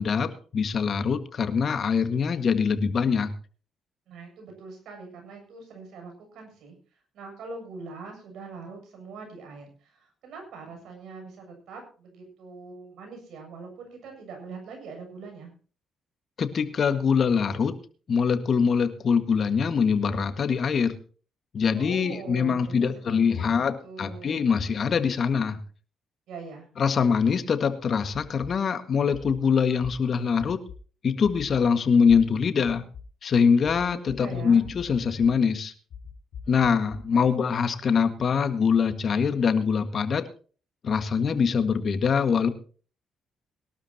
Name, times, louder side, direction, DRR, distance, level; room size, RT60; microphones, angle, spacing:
voice 1, 0.0-3.3 16.4-17.7 18.1-20.9 21.5-25.6 26.8-30.6 31.0-32.8 33.2-35.7 36.5-40.3 40.8-42.5, left 6 dB, 50° left, 10 dB, 1.7 m, -23 dB
voice 2, 4.1-15.5 21.7-23.5 23.8-24.5 26.3-26.7 33.9-34.6 36.4-36.7 37.1-37.3, right 4 dB, 75° right, 3 dB, 7.3 m, -43 dB
sound 1, 28.1-28.5 29.1-29.3 29.8-29.9 30.4-30.8 31.2-31.6 32.1-32.2 32.6-33.0 33.6-34.2 34.6-35.3 35.9-37.0, left 7 dB, 70° left, 4.8 m, -42 dB
22.0 x 12.5 x 2.9 m, 0.38 s
cardioid pair, 90°, 0 cm